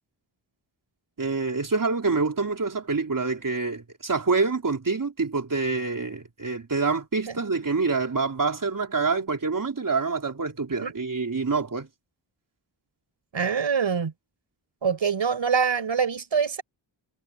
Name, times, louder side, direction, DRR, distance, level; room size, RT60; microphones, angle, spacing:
voice 1, 1.2-11.9, right 4 dB, 45° right, 4.0 m, -26 dB
voice 2, 13.3-14.1 14.8-16.6, right 6 dB, 75° right, 4.4 m, -24 dB
wide cardioid pair, 120°, 46 cm